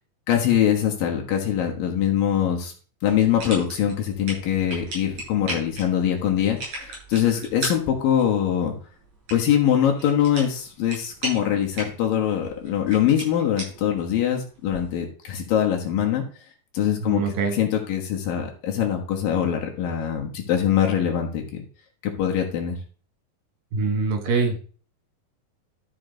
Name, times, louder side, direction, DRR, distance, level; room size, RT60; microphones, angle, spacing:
voice 1, 0.3-2.7 3.0-8.7 9.3-16.2 16.7-17.2 17.6-21.4 22.0-22.8, left 9 dB, 75° left, 1 dB, 3.0 m, -23 dB
sound 1, 3.1-15.0, right 1 dB, 50° right, 7.6 m, -38 dB
voice 2, 17.0-17.6 23.7-24.6, right 4 dB, 75° right, 4 dB, 3.6 m, -24 dB
13.0 x 6.2 x 3.9 m, 0.40 s
omnidirectional pair, 4.1 m